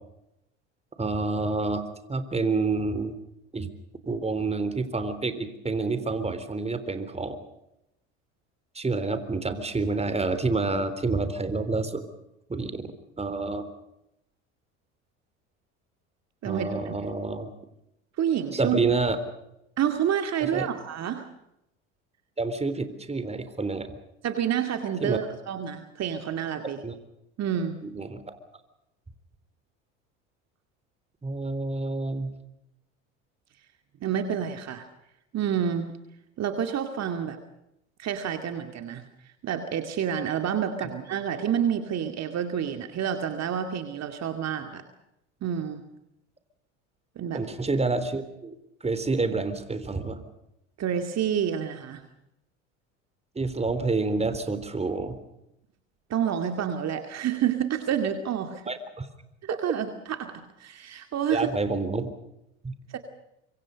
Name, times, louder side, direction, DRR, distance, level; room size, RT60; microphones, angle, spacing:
voice 1, 1.0-3.2 3.5-3.7 4.1-7.4 8.8-12.0 12.5-12.9 13.2-13.7 16.4-17.5 18.5-19.2 20.4-20.7 22.4-23.9 25.0-25.2 26.8-26.9 27.8-28.4 31.2-32.3 40.8-40.9 47.3-48.5 48.8-50.2 53.4-55.2 58.7-59.1 61.3-62.1 62.6-62.7, right 3 dB, 15° right, 11 dB, 3.7 m, -28 dB
voice 2, 16.4-17.0 18.2-18.8 19.8-21.3 24.2-26.8 27.4-27.8 34.0-34.9 35.3-35.9 36.4-37.4 38.0-39.0 39.4-44.8 45.4-45.8 47.2-47.4 50.8-52.0 56.1-58.6 59.4-61.5 62.9-63.0, right 9 dB, 45° right, 6 dB, 2.4 m, -28 dB
25.5 x 24.5 x 5.3 m, 0.85 s
hypercardioid pair, 75°, 36 cm